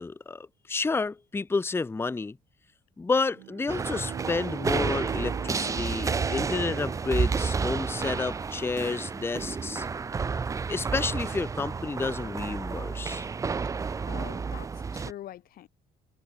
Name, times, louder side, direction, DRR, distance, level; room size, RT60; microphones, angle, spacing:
voice 1, 0.0-2.4 3.0-9.9 10.7-13.3, left 4 dB, 15° left, 0.7 m, -30 dB
Bowed string instrument, 3.3-7.9, right 20 dB, 90° right, 3.0 m, -43 dB
sound 1, 3.7-15.1, right 5 dB, 20° right, 0.4 m, -31 dB
voice 2, 14.1-15.7, left 13 dB, 60° left, 0.9 m, -44 dB
cardioid pair, 110°, 17 cm